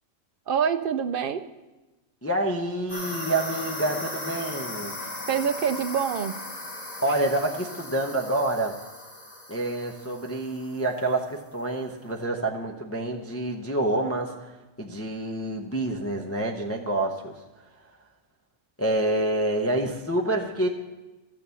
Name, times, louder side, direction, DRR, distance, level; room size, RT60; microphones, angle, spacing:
voice 1, 0.5-1.4 5.3-6.4, right 7 dB, 65° right, 10 dB, 0.5 m, -25 dB
voice 2, 2.2-4.9 7.0-8.7 9.5-14.5 14.8-17.3 18.8-20.7, right 1 dB, 15° left, 0 dB, 0.6 m, -27 dB
sound 1, 2.9-11.1, left 2 dB, 80° left, 3.0 m, -37 dB
13.5 x 6.6 x 7.0 m, 1.1 s
omnidirectional pair, 1.4 m